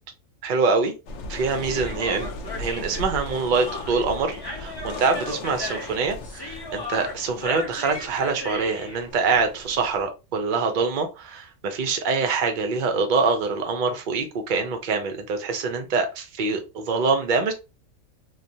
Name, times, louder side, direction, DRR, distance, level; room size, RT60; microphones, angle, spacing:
voice 1, 0.4-0.9 1.3-2.3 2.6-17.5, right 4 dB, 50° right, 0.6 m, -25 dB
sound 1, 1.1-10.1, left 2 dB, 65° left, 0.8 m, -38 dB
Human voice, 1.6-9.0, left 1 dB, 20° left, 0.7 m, -35 dB
3.1 x 2.2 x 2.6 m
omnidirectional pair, 1.4 m